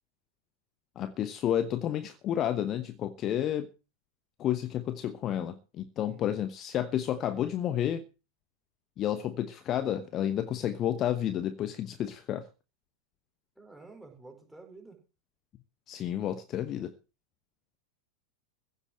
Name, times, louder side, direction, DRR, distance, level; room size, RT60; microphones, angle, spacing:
voice 1, 1.0-3.7 4.4-8.0 9.0-12.4 15.9-16.9, left 11 dB, 30° left, 1.1 m, -31 dB
voice 2, 6.0-6.4 13.5-15.0, right 3 dB, 5° right, 5.0 m, -51 dB
15.5 x 8.1 x 6.5 m
figure-of-eight pair, 90°, 0 cm